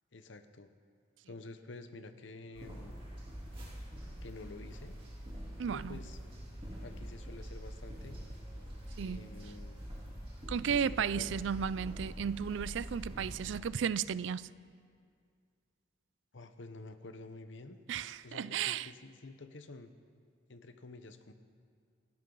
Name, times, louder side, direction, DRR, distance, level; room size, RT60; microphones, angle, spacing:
voice 1, 0.1-0.7 1.3-3.0 4.2-5.0 5.7-6.2 6.8-8.2 9.0-9.8 10.6-11.4 16.3-17.8 18.2-19.9 20.5-21.3, left 2 dB, 70° left, 0.9 m, -49 dB
sound 1, 2.5-13.6, equal, 30° right, 3.1 m, -45 dB
voice 2, 5.6-6.0 9.0-9.3 10.5-14.5 17.9-18.9, right 7 dB, 70° right, 0.4 m, -34 dB
27.5 x 11.0 x 3.9 m
head